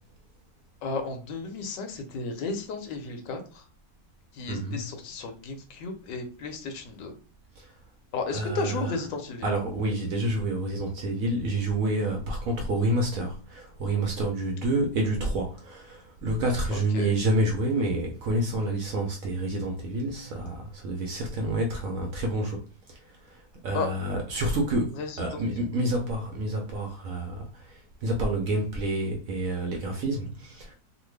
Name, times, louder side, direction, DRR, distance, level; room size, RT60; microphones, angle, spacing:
voice 1, 0.8-3.6 4.3-7.1 8.1-9.5 16.7-17.1 23.7-23.9 25.0-25.4 25.8-25.9, left 4 dB, 85° left, 1.4 m, -34 dB
voice 2, 4.5-4.9 7.6-7.7 8.3-8.9 9.4-22.6 22.9-30.7, right 1 dB, 70° right, 0.8 m, -28 dB
3.1 x 2.3 x 3.2 m
omnidirectional pair, 1.9 m